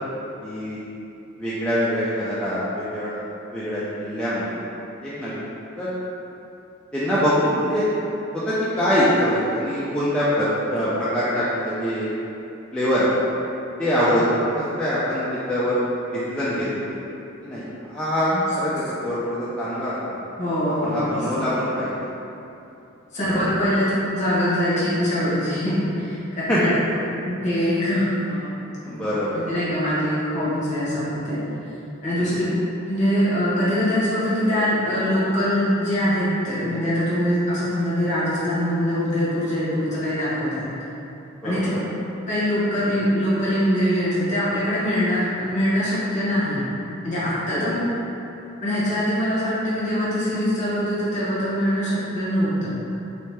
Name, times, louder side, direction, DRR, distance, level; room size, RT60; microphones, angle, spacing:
voice 1, 0.4-0.8 1.4-4.6 5.0-5.4 5.8-5.9 6.9-7.9 8.3-12.1 12.7-13.1 13.8-14.2 14.6-15.8 16.1-17.0 17.4-20.2 20.8-22.1 26.5-26.8 28.8-29.5 32.2-32.3 41.4-41.8 47.5-47.8, equal, 5° left, -11 dB, 0.4 m, -24 dB
voice 2, 20.4-21.3 23.1-26.2 26.6-26.7 27.4-28.5 28.8-29.0 29.3-31.5 32.0-32.4 32.9-40.7 41.4-41.7 42.3-46.7 47.0-47.8 48.6-52.7, equal, 35° left, -9 dB, 1.1 m, -23 dB
3.1 x 2.9 x 3.3 m, 2.8 s
head